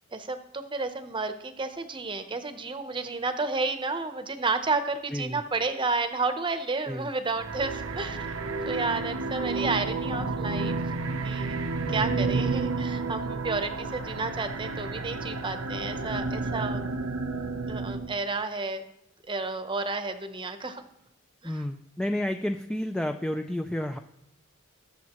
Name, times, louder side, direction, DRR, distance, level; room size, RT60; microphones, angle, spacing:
voice 1, 0.1-8.2 8.6-10.8 11.2-11.6 11.9-16.8 17.7-18.8 19.3-20.8 21.4-21.6, right 3 dB, 25° right, 8 dB, 0.8 m, -31 dB
sound 1, 7.3-18.1, right 3 dB, 90° right, 0.8 m, -31 dB
voice 2, 11.8-12.2 21.4-24.0, left 1 dB, 5° left, 6 dB, 0.4 m, -31 dB
20.5 x 7.2 x 3.0 m, 0.83 s
head